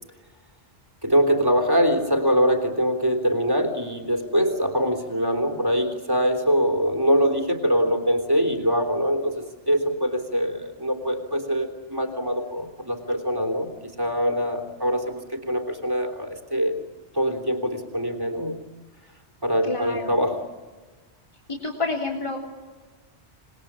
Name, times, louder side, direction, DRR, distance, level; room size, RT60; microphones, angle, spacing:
voice 1, 1.0-13.7 14.0-16.8 17.1-18.6 19.4-20.5, equal, 20° right, 7 dB, 3.4 m, -23 dB
voice 2, 19.6-20.1 21.5-22.4, left 3 dB, 30° left, 0 dB, 3.1 m, -29 dB
27.5 x 21.0 x 8.8 m, 1.3 s
omnidirectional pair, 1.1 m